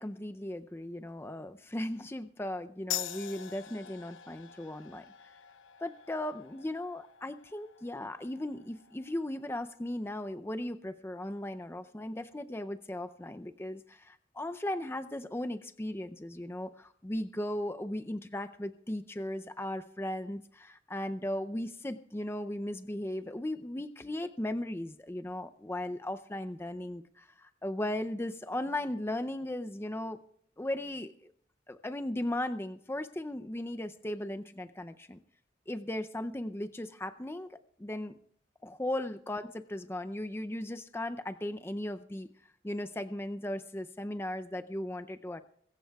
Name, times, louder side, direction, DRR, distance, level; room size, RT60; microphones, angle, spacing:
voice 1, 0.0-5.0 5.8-30.2 30.6-31.3 31.7-35.2 35.7-37.5 37.8-38.1 38.6-42.3 42.6-45.4, left 1 dB, 10° left, 9 dB, 0.5 m, -37 dB
sound 1, 2.9-10.0, left 11 dB, 80° left, 0.7 m, -44 dB
22.5 x 15.0 x 2.3 m, 0.64 s
head